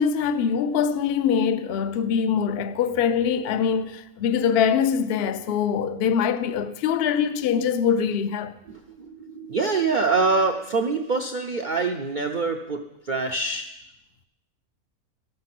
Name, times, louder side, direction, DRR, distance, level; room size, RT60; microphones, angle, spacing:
voice 1, 0.0-8.6, left 7 dB, 60° left, 0.6 m, -23 dB
voice 2, 8.7-13.6, right 4 dB, 65° right, 0.4 m, -25 dB
13.0 x 6.6 x 5.9 m
omnidirectional pair, 1.6 m